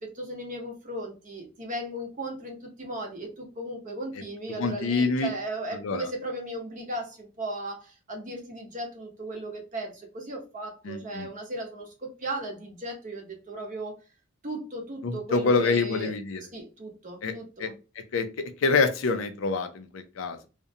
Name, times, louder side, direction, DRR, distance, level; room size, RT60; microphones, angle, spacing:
voice 1, 0.0-13.9 14.4-16.1 16.5-17.7, right 1 dB, 40° right, 1 dB, 0.8 m, -36 dB
voice 2, 4.6-5.3 5.8-6.1 10.8-11.3 15.0-16.4 17.2-17.3 17.6-17.7 18.0-18.3 18.6-20.5, left 4 dB, 70° left, 9 dB, 0.4 m, -26 dB
2.5 x 2.1 x 2.7 m, 0.31 s
head